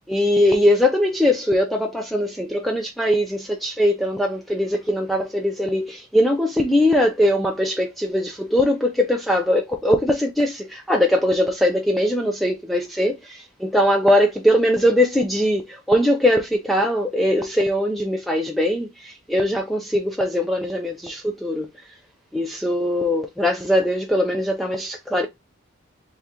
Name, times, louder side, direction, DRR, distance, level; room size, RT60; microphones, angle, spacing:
voice 1, 0.1-21.7 22.3-25.3, left 1 dB, ahead, 0.4 m, -21 dB
3.6 x 2.9 x 3.4 m
head